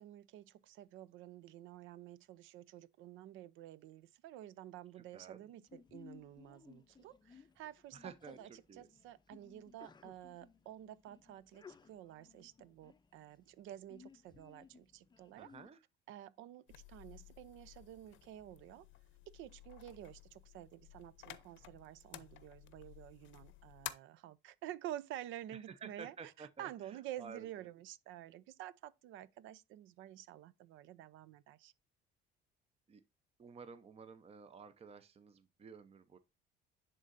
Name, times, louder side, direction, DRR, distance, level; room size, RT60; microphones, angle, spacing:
voice 1, 0.0-15.5 16.1-18.9 19.3-31.7, right 12 dB, 75° right, 0.6 m, -50 dB
voice 2, 4.9-5.4 7.9-8.9 15.4-15.8 25.5-27.7 32.9-33.0 33.4-36.2, right 6 dB, 30° right, 0.7 m, -53 dB
Sneeze, 5.7-15.7, left 6 dB, 20° left, 0.5 m, -61 dB
sound 1, 16.7-23.9, left 14 dB, 70° left, 0.7 m, -53 dB
10.5 x 3.8 x 2.6 m
cardioid pair, 90°, 20 cm